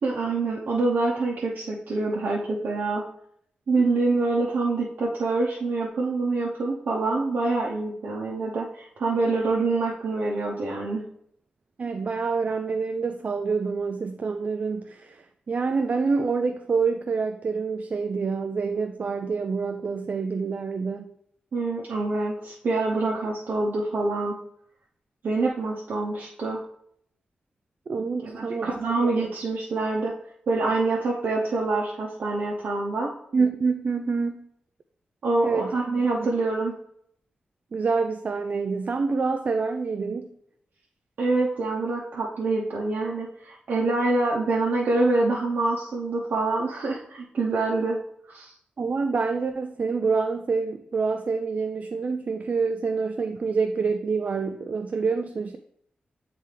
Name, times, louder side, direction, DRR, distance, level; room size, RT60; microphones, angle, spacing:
voice 1, 0.0-3.0 3.7-11.0 21.5-24.4 25.2-26.6 28.2-30.1 30.5-33.1 35.2-36.7 41.2-48.0 48.3-48.5, right 3 dB, 70° right, -5 dB, 0.9 m, -26 dB
voice 2, 11.8-21.1 27.9-28.7 29.0-29.1 33.3-34.4 35.4-35.7 36.2-36.3 37.7-40.3 48.8-55.6, right 4 dB, 50° right, 6 dB, 0.3 m, -27 dB
9.0 x 3.4 x 3.3 m, 0.69 s
wide cardioid pair, 135°, 3 cm